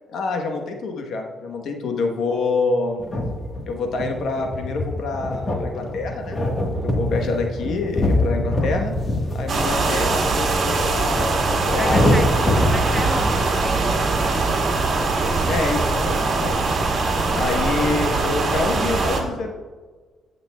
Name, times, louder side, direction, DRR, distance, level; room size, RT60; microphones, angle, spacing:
voice 1, 0.1-3.0 3.7-6.4 6.8-8.9 9.3-12.3 15.5-16.8 17.3-19.5, left 3 dB, 70° left, 3 dB, 1.0 m, -26 dB
sound 1, 3.0-13.4, left 1 dB, 40° left, 1.3 m, -24 dB
sound 2, 9.5-19.2, right 3 dB, 50° right, 1.6 m, -22 dB
voice 2, 11.8-12.3 12.7-14.2, right 1 dB, 5° right, 3 dB, 1.0 m, -31 dB
13.5 x 6.6 x 2.2 m, 1.4 s
cardioid pair, 90°, 0 cm